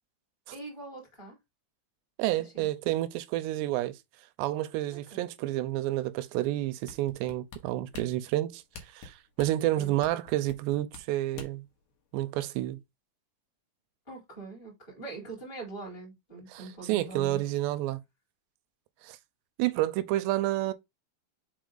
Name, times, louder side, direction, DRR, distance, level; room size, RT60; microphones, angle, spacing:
voice 1, 0.5-1.4 2.5-2.7 4.9-5.2 9.8-9.9 14.1-17.4, right 3 dB, 10° left, 3.3 m, -43 dB
voice 2, 2.2-4.0 4.4-11.6 12.1-12.8 16.5-18.0 19.0-19.2 19.6-20.7, right 15 dB, 80° right, 2.6 m, -30 dB
sound 1, 6.9-11.7 12.2-12.3, left 4 dB, 60° left, 2.4 m, -46 dB
6.1 x 4.8 x 3.9 m
omnidirectional pair, 5.3 m